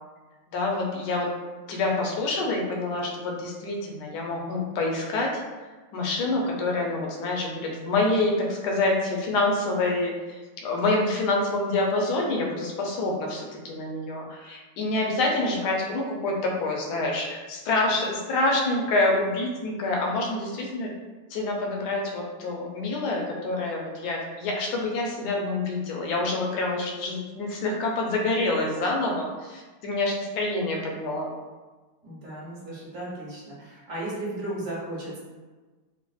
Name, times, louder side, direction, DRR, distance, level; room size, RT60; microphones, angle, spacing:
voice 1, 0.5-1.3 1.7-5.4 5.9-20.9 21.3-31.3, left 2 dB, 75° left, -1 dB, 1.1 m, -27 dB
voice 2, 32.0-35.2, right 1 dB, 50° right, -7 dB, 1.4 m, -35 dB
4.0 x 2.0 x 2.3 m, 1.3 s
omnidirectional pair, 1.9 m